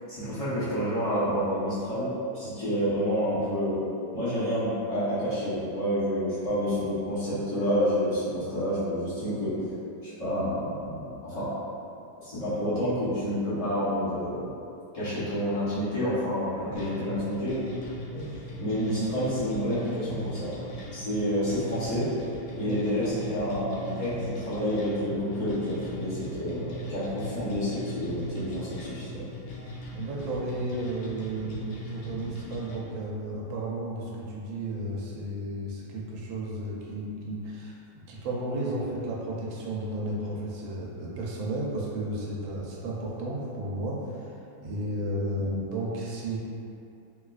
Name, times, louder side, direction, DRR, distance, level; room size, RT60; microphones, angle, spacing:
voice 1, 0.1-2.1 2.3-3.8 4.1-9.6 10.0-11.5 12.2-14.4 14.9-17.6 18.1-20.5 20.9-22.1 22.6-29.2 45.3-45.5, equal, 45° left, -13 dB, 0.5 m, -29 dB
sound 1, 16.8-32.8, equal, 90° left, 1.4 m, -39 dB
voice 2, 29.9-37.7 38.1-46.4, right 1 dB, 90° right, -4 dB, 1.4 m, -33 dB
4.3 x 2.3 x 2.3 m, 2.6 s
omnidirectional pair, 2.1 m